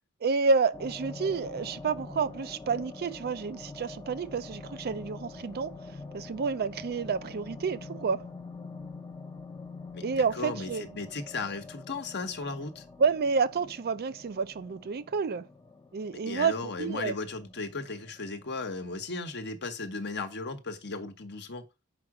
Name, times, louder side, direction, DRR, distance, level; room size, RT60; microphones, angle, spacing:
voice 1, 0.2-5.8 6.1-8.2 10.0-10.9 13.0-15.4 15.9-17.1, right 5 dB, 45° right, 0.4 m, -29 dB
sound 1, 0.7-19.4, left 3 dB, 15° left, 0.7 m, -45 dB
voice 2, 9.9-12.8 16.3-21.6, left 3 dB, 50° left, 1.1 m, -36 dB
5.9 x 4.9 x 4.8 m
head